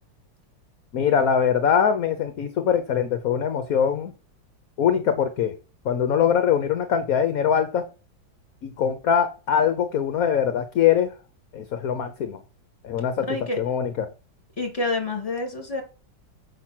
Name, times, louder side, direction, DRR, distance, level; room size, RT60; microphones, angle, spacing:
voice 1, 0.9-4.1 4.8-5.5 5.8-7.8 8.6-11.1 11.5-12.4 12.8-13.3 13.6-14.1, left 8 dB, 55° left, 1.2 m, -22 dB
voice 2, 13.3-13.6 14.6-15.8, left 2 dB, 20° left, 2.6 m, -28 dB
7.3 x 6.0 x 4.5 m
omnidirectional pair, 2.0 m